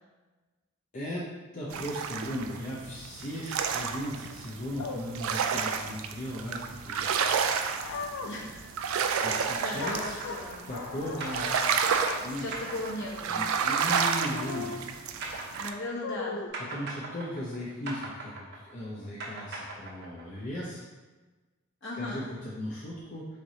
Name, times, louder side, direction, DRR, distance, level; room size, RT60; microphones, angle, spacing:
voice 1, 0.9-1.3 1.5-7.5 9.2-10.2 10.7-11.6 12.2-12.5 13.3-14.9 16.6-20.8 21.9-23.3, equal, 40° left, -6 dB, 0.6 m, -37 dB
sound 1, 1.7-15.7, right 6 dB, 90° right, 0.3 m, -31 dB
sound 2, 4.8-5.0 7.8-8.3 9.8-10.4 10.7-12.2 12.6-12.7 14.3-14.8 16.0-16.5, left 4 dB, 90° left, 0.5 m, -37 dB
voice 2, 8.2-8.7 9.2-10.6 12.4-13.5 15.6-16.4 21.8-22.2, left 1 dB, 60° left, -5 dB, 1.2 m, -37 dB
sound 3, 9.9-16.2 16.5-20.4, right 3 dB, 55° right, 0.7 m, -39 dB
3.7 x 3.3 x 4.0 m, 1.2 s
head